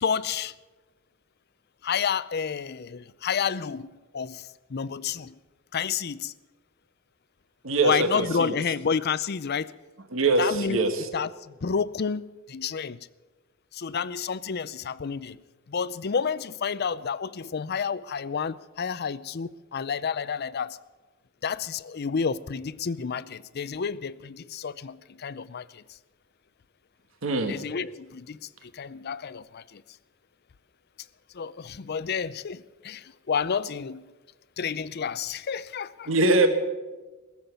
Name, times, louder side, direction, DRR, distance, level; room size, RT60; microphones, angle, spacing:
voice 1, 0.0-0.5 1.8-4.4 4.7-5.3 5.7-6.3 7.8-9.7 10.4-10.8 11.1-11.3 11.6-12.2 12.5-13.0 13.8-15.4 15.7-20.8 21.4-25.0 25.2-25.6 27.5-28.4 28.8-29.6 31.4-33.0 33.3-34.0 34.6-36.1, left 6 dB, 50° left, 0.5 m, -30 dB
voice 2, 7.6-8.5 10.1-11.1 27.2-27.6 36.1-36.5, right 2 dB, 70° right, 1.5 m, -23 dB
20.0 x 7.3 x 9.2 m
head